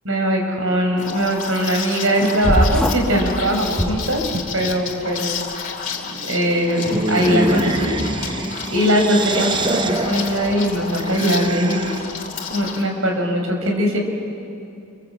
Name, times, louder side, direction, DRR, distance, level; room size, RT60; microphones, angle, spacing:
voice 1, 0.0-4.2 4.5-5.2 6.1-12.0 12.5-14.0, equal, 70° right, 2 dB, 5.6 m, -20 dB
Liquid, 1.0-12.8, left 6 dB, 40° left, 2.5 m, -31 dB
sound 1, 2.4-3.2 3.7-4.6, equal, 5° left, 1.8 m, -21 dB
sound 2, 6.8-12.2, right 2 dB, 20° right, 0.7 m, -26 dB
29.0 x 25.0 x 8.1 m, 2.6 s
head